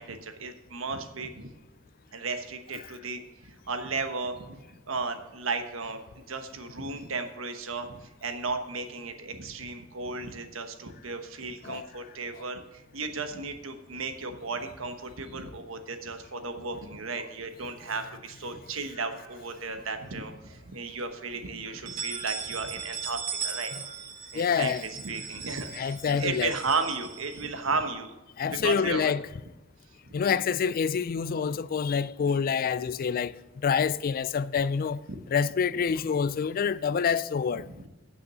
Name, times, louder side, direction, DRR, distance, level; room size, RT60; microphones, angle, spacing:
voice 1, 0.0-1.5 2.1-23.7 24.3-29.1 30.0-30.4 35.1-35.2 37.7-37.9, right 4 dB, 80° right, 1.1 m, -35 dB
sound 1, 19.2-20.1 20.5-20.6 21.0-21.1 21.7-27.9, right 7 dB, 45° right, 1.1 m, -39 dB
voice 2, 24.3-24.8 25.7-26.5 28.4-29.2 30.1-35.0 35.3-37.6, left 6 dB, 45° left, 0.3 m, -27 dB
8.9 x 6.2 x 6.8 m
head